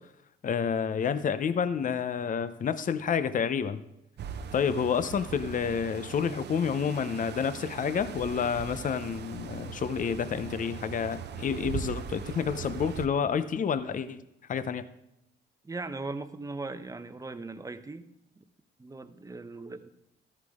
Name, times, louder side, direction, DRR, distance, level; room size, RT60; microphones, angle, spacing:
voice 1, 0.4-3.8 4.5-14.2 14.5-14.9, left 7 dB, 40° left, 13 dB, 0.7 m, -29 dB
sound 1, 4.2-13.1, right 8 dB, 60° right, 0.8 m, -40 dB
voice 2, 15.6-18.0 18.4-18.5 18.8-19.9, right 3 dB, 15° right, 11 dB, 0.8 m, -39 dB
13.0 x 11.5 x 3.6 m, 0.85 s
cardioid pair, 90°, 20 cm